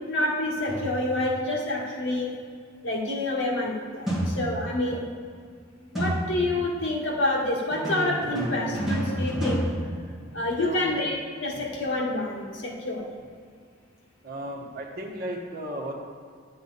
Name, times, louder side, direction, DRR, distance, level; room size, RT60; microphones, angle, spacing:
voice 1, 0.1-2.3 2.8-5.0 5.9-9.7 10.3-13.1, left 2 dB, 70° left, -3 dB, 1.8 m, -28 dB
sound 1, 0.7-1.4 4.1-4.9 6.0-6.7 7.7-10.7, equal, ahead, 2.1 m, -30 dB
voice 2, 10.6-11.0 11.5-11.6 14.2-15.9, right 1 dB, 50° right, -1 dB, 1.4 m, -35 dB
10.5 x 7.9 x 4.1 m, 2.1 s
head